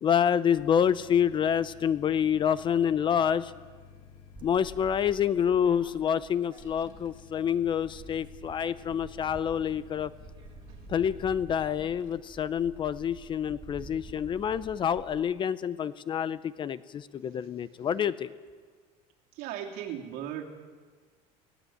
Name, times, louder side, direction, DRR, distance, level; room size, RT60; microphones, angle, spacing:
voice 1, 0.0-3.5 4.4-10.1 10.9-18.3, left 8 dB, 30° left, 16 dB, 0.6 m, -27 dB
sound 1, 0.5-12.2, left 7 dB, 45° left, 2.2 m, -53 dB
sound 2, 4.4-7.2 7.5-15.2, right 4 dB, 30° right, 1.6 m, -49 dB
voice 2, 19.3-20.4, right 10 dB, 65° right, 1 dB, 3.0 m, -37 dB
19.5 x 17.0 x 8.0 m, 1.5 s
cardioid pair, 140°, 16 cm